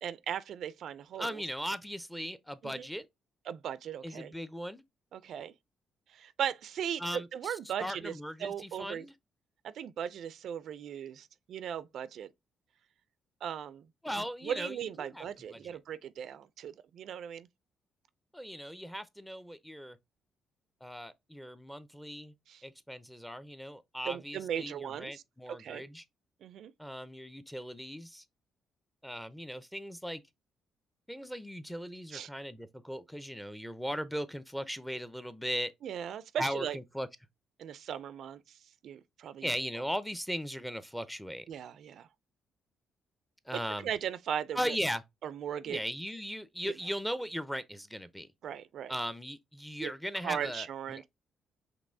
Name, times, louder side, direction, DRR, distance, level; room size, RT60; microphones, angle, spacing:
voice 1, 0.0-1.4 2.6-2.9 3.5-4.3 5.1-5.5 6.1-8.1 8.4-9.1 9.6-12.3 13.4-13.9 14.4-17.5 22.5-22.6 24.1-25.2 25.6-25.9 26.4-26.7 32.1-32.3 35.8-36.8 37.6-39.5 41.5-42.1 43.5-44.8 45.2-45.8 46.6-46.7 48.4-48.9 49.8-49.9 50.2-51.1, right 9 dB, 70° right, 0.3 m, -38 dB
voice 2, 1.2-3.1 4.0-4.8 7.0-9.1 14.0-15.8 18.3-20.0 20.8-22.3 22.6-26.0 26.8-28.2 29.0-30.2 31.1-35.7 36.4-37.1 39.4-41.4 43.5-43.9 44.5-45.0 45.7-48.3 48.9-51.1, equal, 5° left, 0.5 m, -38 dB
5.2 x 3.0 x 2.6 m
cardioid pair, 90°, 0 cm